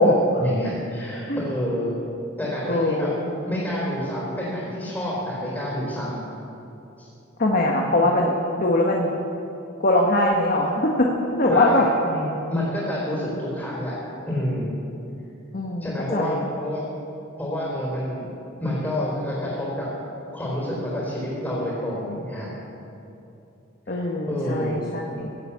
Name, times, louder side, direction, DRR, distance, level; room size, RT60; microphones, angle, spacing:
voice 1, 0.0-1.9 2.4-3.1 3.5-6.2 7.0-7.1 11.5-14.0 14.3-14.7 15.8-16.8 17.4-18.2 18.6-19.9 20.3-22.5 23.9-24.8, equal, 10° left, -7 dB, 3.9 m, -28 dB
voice 2, 2.7-3.1 7.4-9.1 9.8-11.9 15.5-16.4 23.9-25.3, left 1 dB, 45° left, 0 dB, 1.2 m, -21 dB
16.0 x 8.1 x 8.4 m, 2.8 s
head